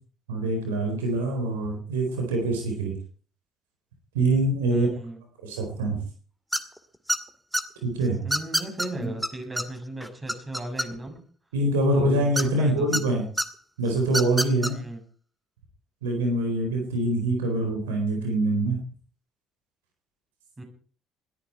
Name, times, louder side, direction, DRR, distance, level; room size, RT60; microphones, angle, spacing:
voice 1, 0.3-2.9 4.1-4.9 5.4-6.0 7.8-8.2 9.0-9.1 11.5-13.2 13.8-14.8 16.0-18.8, right 1 dB, 90° right, 3 dB, 4.2 m, -24 dB
voice 2, 4.7-5.2 8.2-11.2 11.8-13.2 14.7-15.0 20.6-20.7, right 1 dB, 25° right, 3 dB, 7.7 m, -36 dB
sound 1, 6.5-6.8 7.1-7.6 8.3-8.9 9.2-9.3 9.6-9.7 10.0-11.2 12.3-13.0 13.4-13.5 14.1-14.7, equal, 5° right, 2.1 m, -26 dB
21.0 x 14.0 x 4.6 m, 0.43 s
hypercardioid pair, 55°, 0 cm